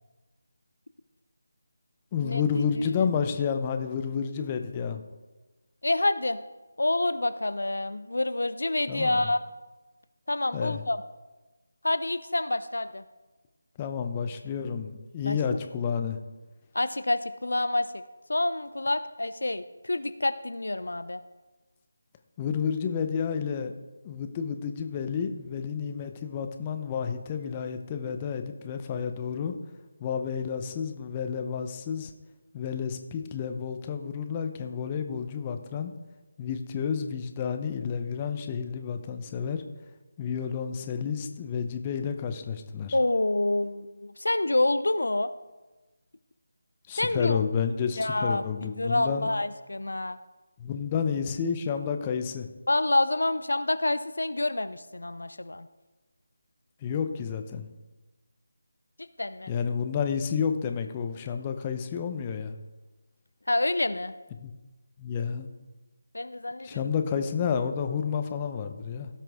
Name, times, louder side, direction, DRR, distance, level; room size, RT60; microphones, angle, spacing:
voice 1, 2.1-5.0 8.9-9.2 10.5-10.8 13.8-16.2 22.4-23.7 24.0-29.5 30.0-32.1 32.5-35.9 36.4-39.6 40.2-42.9 46.9-49.3 50.6-52.5 56.8-57.7 59.5-62.5 64.4-64.5 65.0-65.5 66.6-69.1, left 6 dB, 20° left, 7 dB, 0.7 m, -30 dB
voice 2, 5.8-6.4 6.8-9.4 10.3-11.0 11.8-13.0 15.2-15.4 16.7-18.0 18.3-21.2 42.9-45.3 46.9-47.4 48.0-50.2 52.7-55.7 59.0-59.5 63.5-64.1 66.1-66.9, left 2 dB, 75° left, 13 dB, 0.5 m, -27 dB
17.0 x 5.9 x 3.5 m, 1.2 s
figure-of-eight pair, 160°, 0 cm